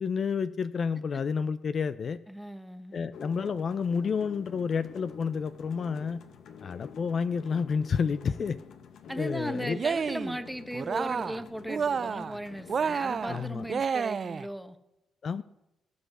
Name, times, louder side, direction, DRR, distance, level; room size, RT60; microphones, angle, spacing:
voice 1, 0.0-2.2 2.9-6.2 6.6-8.6 9.2-9.8 13.3-13.6 15.2-15.4, left 6 dB, 50° left, 13 dB, 0.5 m, -30 dB
voice 2, 2.3-3.1 8.1-8.4 9.1-14.8, equal, ahead, 8 dB, 1.2 m, -37 dB
sound 1, 3.1-13.8, left 7 dB, 70° left, 1.3 m, -48 dB
Cheering, 9.7-10.4 10.7-11.4 11.7-12.4 12.7-14.5, right 6 dB, 45° right, 0.4 m, -30 dB
19.0 x 8.0 x 6.8 m, 0.90 s
cardioid pair, 90°, 0 cm